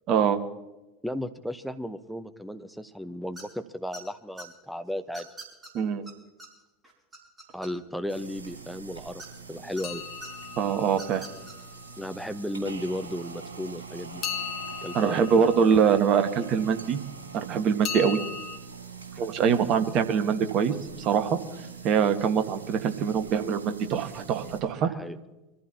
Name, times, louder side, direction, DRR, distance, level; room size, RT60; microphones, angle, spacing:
voice 1, 0.1-0.4 5.7-6.0 10.6-11.3 14.9-17.0 17.3-18.2 19.2-21.4 21.8-24.9, right 7 dB, 45° right, 8 dB, 1.5 m, -24 dB
voice 2, 1.0-5.3 7.5-9.2 9.5-10.0 12.0-14.2 14.8-15.5 24.8-25.2, left 1 dB, ahead, 10 dB, 1.0 m, -35 dB
sound 1, 3.4-3.6 3.9-4.5 5.1-5.7 6.1-6.2 6.4-6.5 6.8-8.0 9.2-9.8 10.2-10.3 10.9-11.5, right 1 dB, 15° right, 5.0 m, -43 dB
sound 2, 8.1-24.6, right 5 dB, 75° right, 3.2 m, -43 dB
sound 3, 9.8-11.9 14.2-16.6 17.8-18.6, left 7 dB, 40° left, 1.3 m, -38 dB
25.0 x 15.0 x 2.9 m, 1.0 s
figure-of-eight pair, 75°, 0 cm